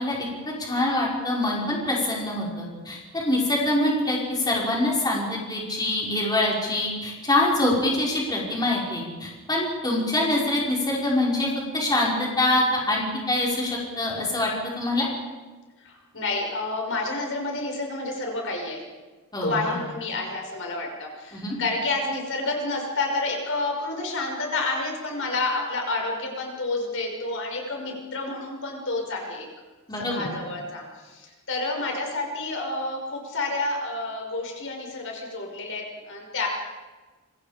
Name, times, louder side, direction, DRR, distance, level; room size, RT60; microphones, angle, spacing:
voice 1, 0.0-11.5 11.7-14.5 14.8-15.1 19.3-19.8 21.3-21.6 29.9-30.3, left 1 dB, 20° left, -3 dB, 5.2 m, -25 dB
voice 2, 15.8-18.8 19.4-29.5 30.0-36.5, left 2 dB, 60° left, 1 dB, 5.8 m, -29 dB
27.0 x 25.0 x 5.1 m, 1.3 s
head